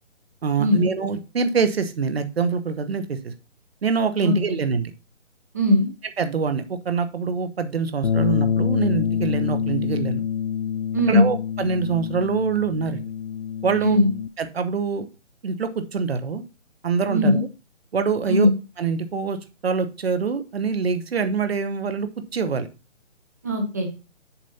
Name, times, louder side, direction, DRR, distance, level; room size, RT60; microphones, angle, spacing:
voice 1, 0.4-3.3 3.8-4.9 6.2-10.2 11.1-13.0 13.6-14.0 14.4-15.0 15.4-16.4 16.8-17.4 17.9-18.5 18.8-19.4 19.6-22.7, right 5 dB, 55° right, 10 dB, 1.1 m, -24 dB
voice 2, 5.5-5.9 10.9-11.3 13.8-14.1 17.1-17.4 18.3-18.5 23.4-23.9, left 1 dB, 15° right, 4 dB, 0.7 m, -19 dB
Bass guitar, 8.0-14.3, left 8 dB, 60° left, 0.5 m, -26 dB
7.1 x 4.3 x 5.5 m, 0.31 s
figure-of-eight pair, 160°, 38 cm